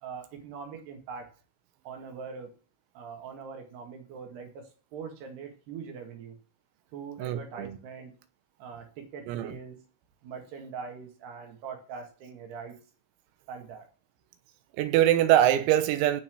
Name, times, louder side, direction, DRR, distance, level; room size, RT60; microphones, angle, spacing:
voice 1, 0.0-1.3 1.8-2.5 3.0-6.4 6.9-8.2 8.6-9.8 10.2-12.8 13.5-13.9, right 6 dB, 60° right, 3.7 m, -42 dB
voice 2, 7.2-7.8 9.3-9.5 14.8-16.2, right 12 dB, 85° right, 3.8 m, -23 dB
17.0 x 6.0 x 6.3 m
omnidirectional pair, 6.0 m